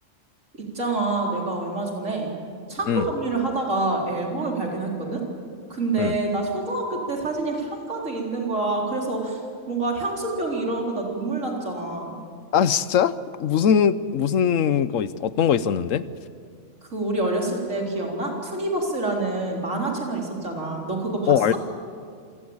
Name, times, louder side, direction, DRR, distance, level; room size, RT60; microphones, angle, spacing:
voice 1, 0.6-2.3 2.7-5.2 5.7-9.4 9.7-12.2 16.9-21.6, right 2 dB, 80° right, -1 dB, 4.4 m, -27 dB
voice 2, 12.5-16.0 21.3-21.6, left 8 dB, 90° left, 15 dB, 1.2 m, -21 dB
27.0 x 18.0 x 8.8 m, 2.2 s
omnidirectional pair, 1.3 m